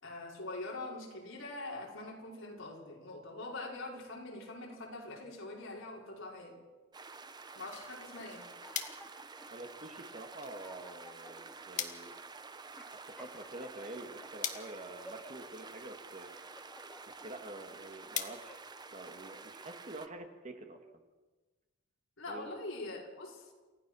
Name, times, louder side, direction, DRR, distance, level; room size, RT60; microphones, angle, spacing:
voice 1, 0.0-6.6 7.5-8.5 22.2-23.5, left 2 dB, 70° left, -2 dB, 5.1 m, -43 dB
sound 1, 6.9-20.1, right 4 dB, 20° right, 0.8 m, -50 dB
sound 2, 8.3-9.5 10.1-10.2 10.5-11.6 12.1-12.3 12.8-14.3 14.8-15.5 16.0-17.3 17.8-18.8, equal, 5° left, 2.3 m, -56 dB
sound 3, 8.6-19.5, left 8 dB, 40° left, 1.6 m, -46 dB
voice 2, 9.5-12.2 13.2-16.3 17.1-18.6 18.9-21.0 22.3-22.5, right 2 dB, 35° right, 5 dB, 1.9 m, -47 dB
28.5 x 15.0 x 6.3 m, 1.3 s
head